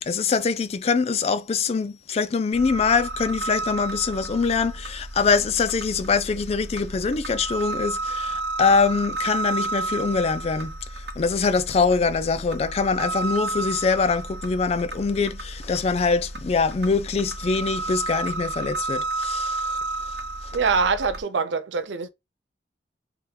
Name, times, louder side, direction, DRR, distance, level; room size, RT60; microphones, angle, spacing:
voice 1, 0.0-10.8 11.2-19.8, left 4 dB, 35° left, 0.3 m, -23 dB
sound 1, 2.5-21.2, right 2 dB, 70° right, 0.9 m, -32 dB
voice 2, 20.5-22.1, right 5 dB, 85° right, 0.5 m, -24 dB
3.4 x 3.0 x 3.2 m
head